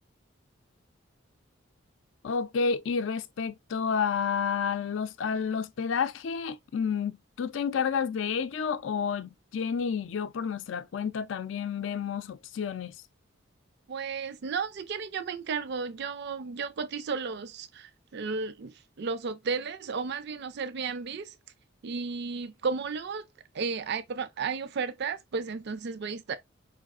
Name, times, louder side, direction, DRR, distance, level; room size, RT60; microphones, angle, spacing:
voice 1, 2.2-13.0, left 6 dB, 70° left, 0.4 m, -30 dB
voice 2, 13.9-21.4 21.8-23.2 23.5-26.4, right 5 dB, 60° right, 0.4 m, -33 dB
4.7 x 3.1 x 2.4 m
head